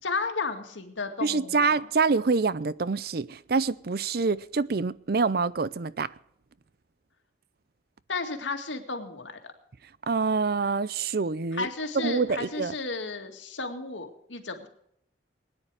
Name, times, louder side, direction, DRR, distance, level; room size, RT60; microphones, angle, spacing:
voice 1, 0.0-1.9 8.1-9.5 11.5-14.7, left 3 dB, 85° left, 2.2 m, -33 dB
voice 2, 1.2-6.1 10.1-11.7 11.9-12.7, right 4 dB, 55° right, 0.5 m, -26 dB
20.5 x 9.9 x 4.9 m
head